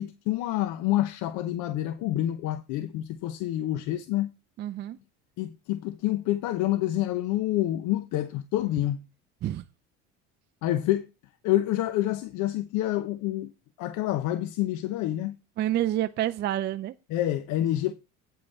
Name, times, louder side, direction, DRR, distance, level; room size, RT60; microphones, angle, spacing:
voice 1, 0.0-4.3 5.4-9.0 10.6-11.1 11.4-13.5 13.8-15.4 17.1-17.9, left 14 dB, 60° left, 0.8 m, -27 dB
voice 2, 4.6-5.0 9.4-9.6 15.6-16.9, right 13 dB, 30° right, 0.4 m, -28 dB
8.9 x 5.5 x 5.4 m
cardioid pair, 130°, 33 cm